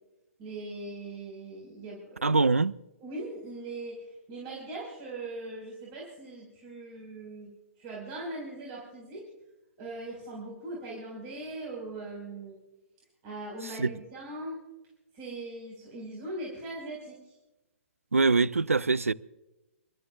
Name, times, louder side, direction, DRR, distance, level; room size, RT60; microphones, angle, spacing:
voice 1, 0.4-2.3 3.0-9.3 9.8-12.6 13.2-14.6 15.1-17.3, right 2 dB, 35° right, 4.9 m, -40 dB
voice 2, 2.2-2.8 13.8-13.9 18.1-19.1, right 3 dB, 80° right, 0.4 m, -23 dB
29.0 x 13.0 x 2.4 m
figure-of-eight pair, 125°, 7 cm